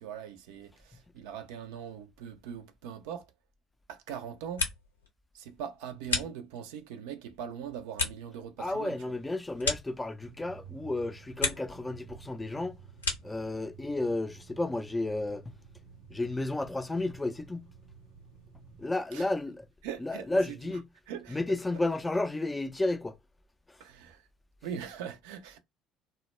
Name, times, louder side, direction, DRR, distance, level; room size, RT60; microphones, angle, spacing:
voice 1, 0.0-3.3 3.9-4.7 5.3-9.0 19.1-19.3 19.8-20.7 21.1-21.4 23.8-24.2 24.6-25.6, right 8 dB, 70° right, 0.4 m, -41 dB
sound 1, 4.3-5.1 5.4-6.8 7.3-10.5 10.9-11.8 12.1-13.5, left 4 dB, 85° left, 0.5 m, -36 dB
voice 2, 8.6-12.8 13.2-15.6 16.1-17.7 18.8-19.7 20.0-20.9 21.3-23.1 23.7-23.8, left 2 dB, 15° left, 0.4 m, -32 dB
sound 2, 10.2-18.9, right 7 dB, 90° right, 0.8 m, -53 dB
2.1 x 2.0 x 3.0 m
figure-of-eight pair, 55°, 0 cm